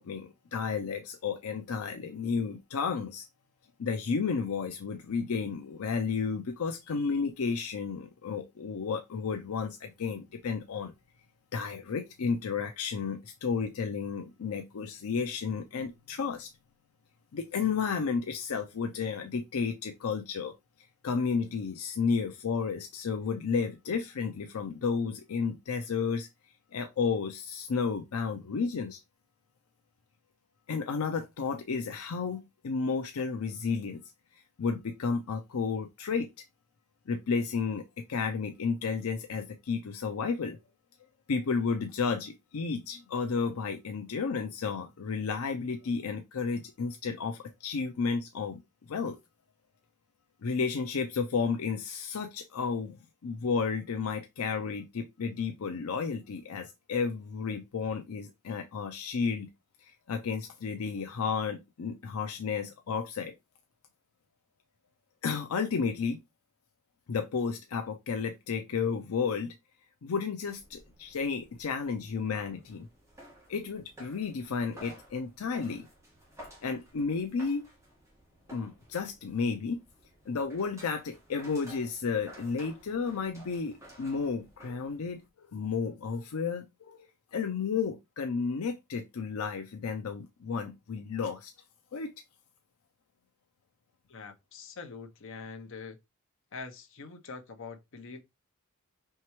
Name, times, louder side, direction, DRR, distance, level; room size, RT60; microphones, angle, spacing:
voice 1, 0.0-3.3 3.8-10.9 11.5-16.5 17.3-20.5 21.0-26.3 26.7-29.0 30.7-34.0 34.3-36.3 37.1-37.8 38.1-40.6 41.3-49.2 50.4-53.0 53.2-59.5 59.8-63.3 65.2-66.2 67.1-69.6 70.0-72.9 73.5-75.9 76.6-77.6 78.5-79.8 80.3-91.5 91.9-92.1, left 5 dB, 80° left, 0.5 m, -32 dB
sound 1, 70.4-85.3, equal, 15° right, 1.5 m, -54 dB
voice 2, 94.1-96.0 96.5-98.2, left 4 dB, 60° left, 0.8 m, -44 dB
4.5 x 3.3 x 3.0 m
head